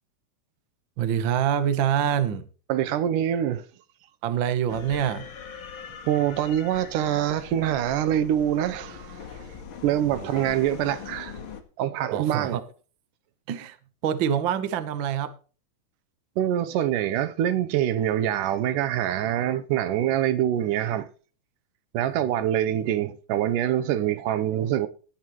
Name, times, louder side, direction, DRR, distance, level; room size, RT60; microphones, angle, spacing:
voice 1, 1.0-2.5 4.2-5.3 12.1-12.6 13.5-13.8 14.0-15.3, right 9 dB, 70° right, 1.1 m, -25 dB
voice 2, 2.7-3.7 6.1-9.2 9.8-11.4 11.8-12.6 16.4-21.1 21.9-24.9, right 11 dB, 90° right, 2.4 m, -25 dB
sound 1, 4.7-11.6, left 6 dB, 45° left, 2.0 m, -41 dB
18.0 x 8.9 x 3.1 m
omnidirectional pair, 3.6 m